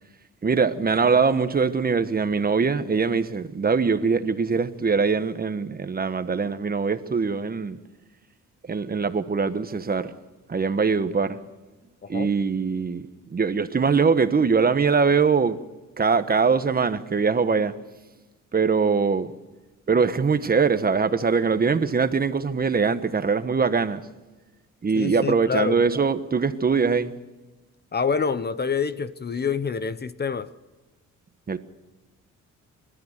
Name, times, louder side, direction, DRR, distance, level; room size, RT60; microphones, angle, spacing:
voice 1, 0.4-7.8 8.7-10.1 10.5-11.4 12.1-13.0 13.3-15.6 16.0-17.7 18.5-19.3 19.9-24.0 24.8-27.1 31.5-31.6, right 5 dB, 30° right, 1.3 m, -22 dB
voice 2, 25.0-25.8 27.9-30.5, left 6 dB, 35° left, 0.9 m, -26 dB
30.0 x 13.5 x 6.7 m
cardioid pair, 90°, 30 cm